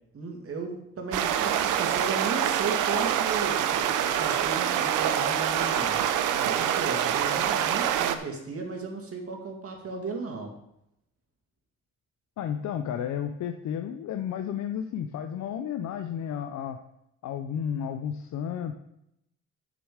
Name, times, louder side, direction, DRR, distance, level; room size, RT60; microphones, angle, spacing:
voice 1, 0.1-10.5, right 4 dB, 50° right, 2 dB, 2.2 m, -35 dB
sound 1, 1.1-8.2, right 10 dB, 85° right, 0.7 m, -26 dB
voice 2, 12.4-16.8 17.2-18.8, left 8 dB, 65° left, 7 dB, 0.7 m, -32 dB
7.4 x 6.9 x 5.0 m, 0.80 s
cardioid pair, 90°, 30 cm